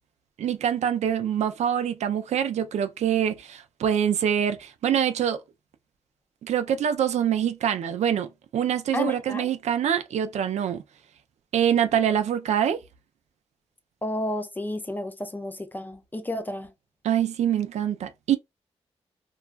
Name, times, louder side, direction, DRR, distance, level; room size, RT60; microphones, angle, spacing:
voice 1, 0.4-5.4 6.4-10.8 11.5-12.8 17.0-18.4, right 9 dB, 80° right, 0.4 m, -25 dB
voice 2, 8.9-9.5 14.0-16.7, left 1 dB, 15° left, 0.4 m, -31 dB
2.3 x 2.2 x 2.4 m
cardioid pair, 100°, 12 cm